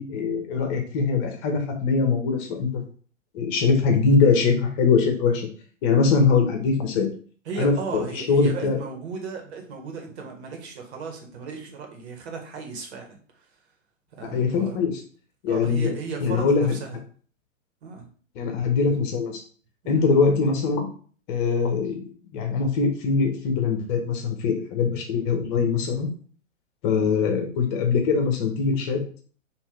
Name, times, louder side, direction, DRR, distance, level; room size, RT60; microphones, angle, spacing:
voice 1, 0.0-2.8 3.3-5.5 5.8-7.1 7.6-8.8 14.2-15.0 15.4-15.9 16.2-16.7 18.3-19.4 19.9-20.9 21.3-22.1 22.3-26.1 26.8-29.0, left 5 dB, 40° left, 4 dB, 1.2 m, -22 dB
voice 2, 7.4-13.5 14.1-14.8 15.5-17.0 17.8-18.1 19.8-20.1, right 5 dB, 55° right, 2 dB, 1.5 m, -36 dB
5.4 x 2.9 x 3.3 m, 0.44 s
hypercardioid pair, 115°, 39 cm